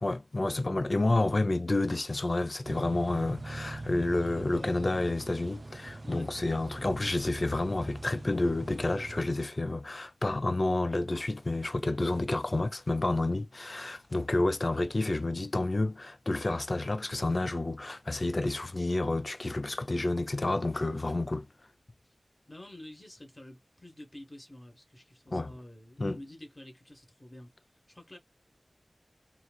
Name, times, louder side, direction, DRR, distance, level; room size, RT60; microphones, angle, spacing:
voice 1, 0.0-21.5 25.3-25.5 26.0-26.2, left 2 dB, 50° left, 0.5 m, -30 dB
sound 1, 2.6-9.2, right 2 dB, 55° right, 0.4 m, -43 dB
voice 2, 4.2-5.1 6.0-6.3 22.5-27.5 27.9-28.2, left 1 dB, 25° left, 1.3 m, -48 dB
2.9 x 2.6 x 2.2 m
wide cardioid pair, 55°, 0 cm